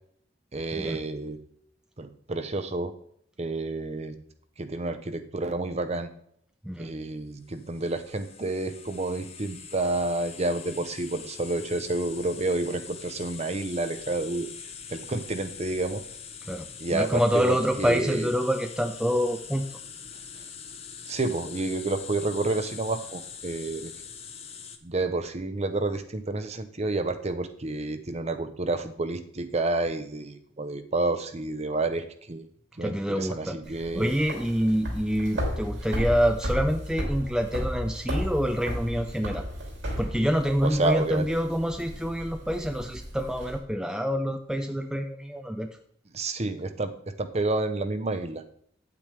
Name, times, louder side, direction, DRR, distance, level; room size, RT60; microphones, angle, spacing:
voice 1, 0.5-1.4 2.0-2.9 3.4-4.1 4.6-6.1 6.8-14.5 14.9-16.0 16.8-18.3 21.1-23.9 24.8-32.4 32.8-34.1 40.6-41.3 46.1-48.4, right 2 dB, 35° right, 9 dB, 0.8 m, -29 dB
sound 1, 7.5-24.8, left 6 dB, 35° left, 0.8 m, -43 dB
voice 2, 16.5-19.8 32.8-33.6 33.9-39.5 40.0-45.7, equal, 5° right, 5 dB, 0.4 m, -27 dB
sound 2, 33.6-43.6, equal, 80° right, 3.2 m, -34 dB
9.1 x 8.6 x 3.4 m, 0.65 s
head